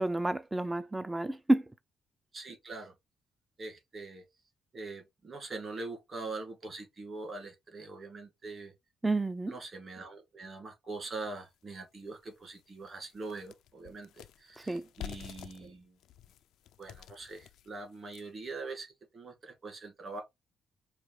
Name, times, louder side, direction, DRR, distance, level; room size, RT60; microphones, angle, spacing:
voice 1, 0.0-1.7 9.0-9.5 14.7-14.9, right 2 dB, 15° right, 0.3 m, -29 dB
voice 2, 2.3-2.9 3.6-4.2 4.7-8.7 9.5-16.0 16.8-20.2, right 3 dB, 45° right, 2.2 m, -43 dB
sound 1, 11.4-11.5 12.0-12.1 12.4-18.5, left 11 dB, 85° left, 0.3 m, -49 dB
4.9 x 2.4 x 3.1 m
cardioid pair, 90°, 0 cm